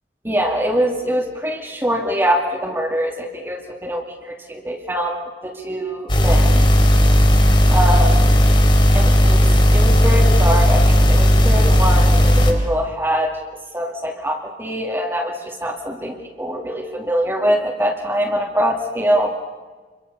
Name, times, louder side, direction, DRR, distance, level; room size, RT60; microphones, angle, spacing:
voice 1, 0.2-6.7 7.7-8.3 8.9-9.5 9.7-13.4 13.7-19.3, equal, 15° right, 0 dB, 2.4 m, -23 dB
sound 1, 6.1-12.5, equal, 30° left, 4.2 m, -14 dB
27.5 x 23.5 x 6.9 m, 1.4 s
head